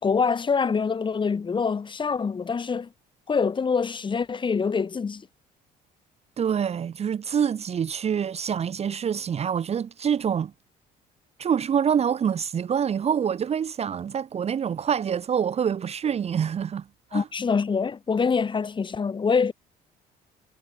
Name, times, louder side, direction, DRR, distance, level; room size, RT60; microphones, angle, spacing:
voice 1, 0.0-2.9 3.3-5.3 17.1-19.5, left 5 dB, 30° left, 2.0 m, -25 dB
voice 2, 6.4-10.5 11.4-17.3, right 8 dB, 40° right, 0.9 m, -26 dB
cardioid pair, 110°, 17 cm